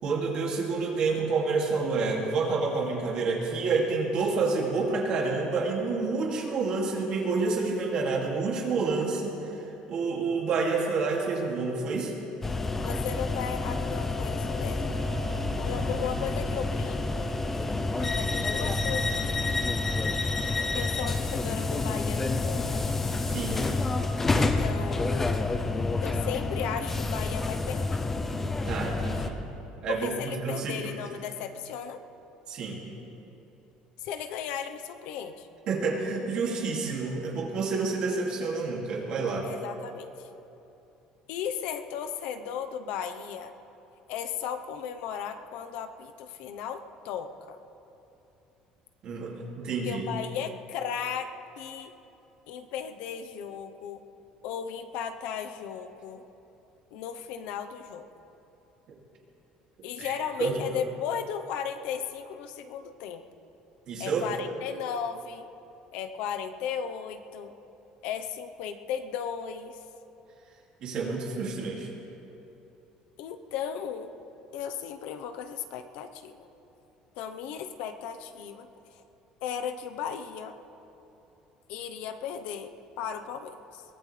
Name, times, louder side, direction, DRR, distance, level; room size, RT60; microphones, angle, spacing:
voice 1, 0.0-9.4 9.9-12.1 23.3-23.6 28.6-29.4 29.8-30.1 30.4-30.8 32.5-32.8 35.7-39.5 49.0-50.0 60.0-60.6 63.9-64.2 70.8-71.9, right 4 dB, 40° right, -1 dB, 2.6 m, -28 dB
sound 1, 12.4-29.3, left 3 dB, 15° left, 0.6 m, -29 dB
voice 2, 12.8-15.0 15.6-17.3 18.0-19.5 20.7-22.8 24.3-25.5 26.0-28.0 29.9-32.0 34.0-35.5 39.4-40.3 41.3-43.5 44.1-47.6 49.8-51.9 52.5-54.0 54.4-56.2 56.9-58.0 59.8-63.2 64.0-65.5 65.9-67.5 68.0-69.8 73.2-74.1 74.5-76.5 77.2-78.7 78.9-79.0 79.4-80.6 81.7-82.7 83.0-83.8, left 8 dB, 70° left, 8 dB, 1.0 m, -36 dB
23.0 x 18.0 x 3.4 m, 2.9 s
cardioid pair, 170°, 2 cm